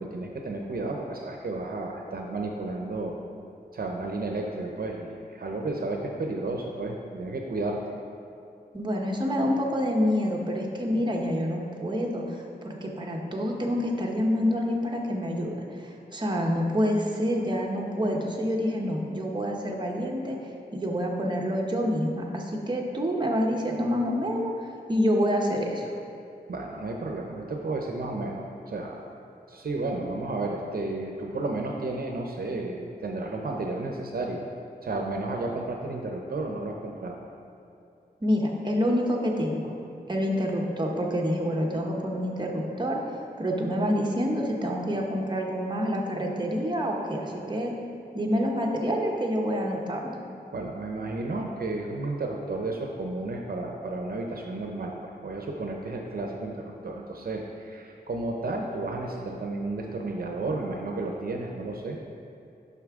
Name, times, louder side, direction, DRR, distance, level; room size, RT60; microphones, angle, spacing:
voice 1, 0.0-3.2 3.7-7.8 26.5-29.1 29.5-34.4 34.8-37.2 50.5-62.0, right 2 dB, 65° right, 1 dB, 0.7 m, -32 dB
voice 2, 8.7-20.4 20.7-24.5 24.9-25.9 38.2-39.7 40.1-47.7 48.1-50.2, equal, 25° right, -1 dB, 1.0 m, -27 dB
9.5 x 5.7 x 3.6 m, 2.6 s
wide cardioid pair, 85°, 17 cm